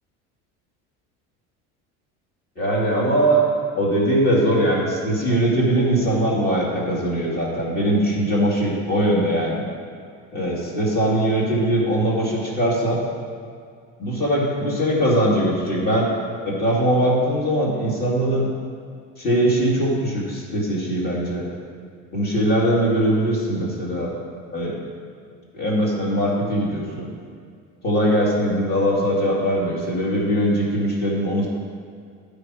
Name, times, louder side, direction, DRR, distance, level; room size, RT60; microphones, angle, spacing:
voice 1, 2.6-3.4 3.8-9.6 10.3-13.0 14.0-16.1 16.5-18.5 19.2-21.5 22.1-24.1 24.5-24.8 25.5-27.1 27.8-31.5, right 1 dB, 30° left, -4 dB, 2.1 m, -21 dB
10.5 x 5.3 x 4.8 m, 2.2 s
cardioid pair, 145°, 32 cm